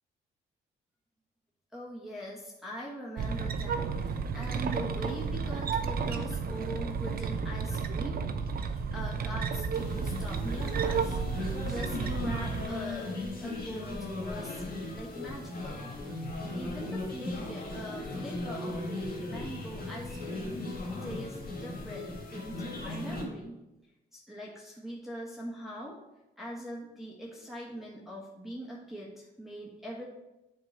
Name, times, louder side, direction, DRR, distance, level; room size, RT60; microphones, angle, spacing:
voice 1, 1.7-8.2 8.9-13.1 13.4-15.9 16.5-20.6 21.0-23.6 24.1-26.0 26.4-30.1, equal, ahead, -5 dB, 1.3 m, -42 dB
sound 1, 3.2-12.7, right 5 dB, 50° right, 0.6 m, -32 dB
sound 2, 9.7-23.3, left 2 dB, 50° left, 1.7 m, -37 dB
7.7 x 3.8 x 4.3 m, 0.98 s
cardioid pair, 90°, 20 cm